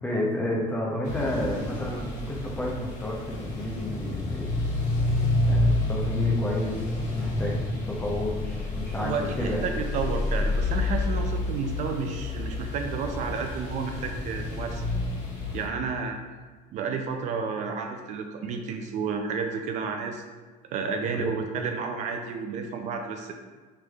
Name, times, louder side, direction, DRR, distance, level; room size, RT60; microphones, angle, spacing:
voice 1, 0.0-4.5 5.4-7.6 7.9-9.6 21.2-21.3, left 1 dB, 10° left, -2 dB, 0.5 m, -31 dB
sound 1, 1.0-15.7, left 2 dB, 50° left, 1.3 m, -29 dB
voice 2, 9.0-14.8 15.5-16.2 16.7-20.2 20.7-23.3, right 5 dB, 50° right, 4 dB, 0.4 m, -31 dB
5.8 x 3.2 x 2.3 m, 1.4 s
cardioid pair, 170°, 16 cm